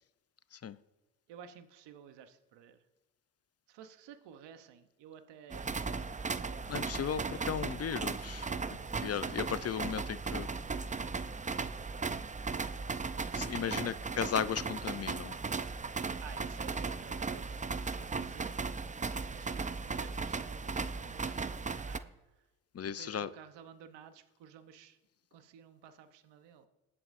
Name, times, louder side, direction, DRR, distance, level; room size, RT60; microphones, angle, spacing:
voice 1, 1.3-2.8 3.7-5.7 6.2-7.6 8.9-9.7 13.6-14.0 15.9-18.7 19.3-22.1 22.9-25.0 25.3-26.7, right 8 dB, 80° right, 0.9 m, -53 dB
sound 1, 5.5-22.0, right 4 dB, 20° right, 0.5 m, -37 dB
voice 2, 6.7-8.5 9.0-10.5 13.3-15.3 22.7-23.3, left 8 dB, 35° left, 0.6 m, -35 dB
20.0 x 8.6 x 2.6 m
supercardioid pair, 50°, 42 cm